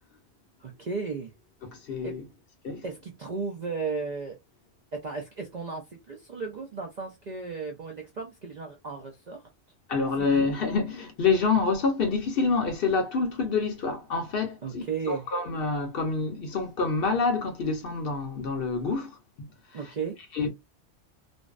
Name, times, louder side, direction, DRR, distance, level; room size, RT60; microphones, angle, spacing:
voice 1, 0.6-1.3 2.0-2.1 2.8-4.4 4.9-9.4 10.2-10.5 14.6-15.3 19.7-20.2, right 4 dB, 55° right, 0.5 m, -35 dB
voice 2, 1.6-2.2 2.6-2.8 9.9-19.2 20.3-20.5, left 4 dB, 60° left, 0.7 m, -27 dB
2.5 x 2.1 x 2.3 m
omnidirectional pair, 1.2 m